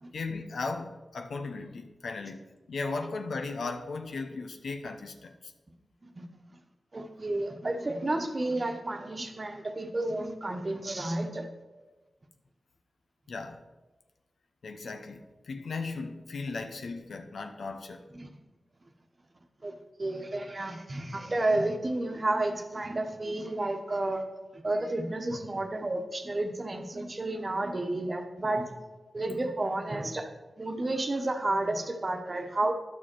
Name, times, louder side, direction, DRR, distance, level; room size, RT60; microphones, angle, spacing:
voice 1, 0.1-5.5 13.3-13.6 14.6-18.1, left 3 dB, 80° left, 6 dB, 0.8 m, -37 dB
voice 2, 6.9-11.5 18.1-18.3 19.6-19.7 20.0-24.2 24.5-28.7 29.1-30.2 30.6-32.7, right 2 dB, 45° right, 5 dB, 1.1 m, -31 dB
10.5 x 6.6 x 4.6 m, 1.1 s
cardioid pair, 50°, 0 cm